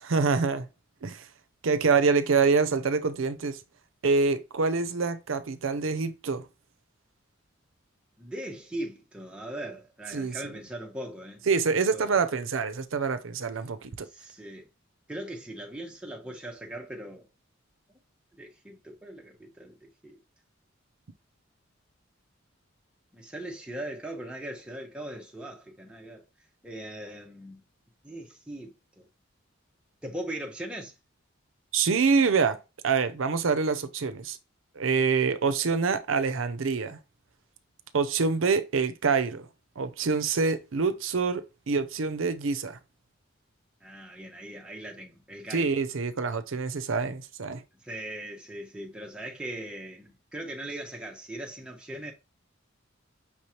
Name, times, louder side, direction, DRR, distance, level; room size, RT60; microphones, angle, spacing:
voice 1, 0.0-0.7 1.0-1.2 1.6-3.6 4.0-6.5 10.1-10.4 11.5-14.1 31.7-32.6 32.8-34.4 34.8-37.0 37.9-39.5 39.8-42.8 45.5-47.6, right 5 dB, 75° right, 0.6 m, -26 dB
voice 2, 8.2-11.5 11.9-12.2 14.0-14.7 15.1-17.3 18.3-20.2 23.1-26.2 26.6-27.6 28.0-29.1 30.0-30.9 43.8-45.7 47.8-52.1, right 1 dB, 5° right, 0.9 m, -40 dB
5.7 x 3.2 x 2.8 m
head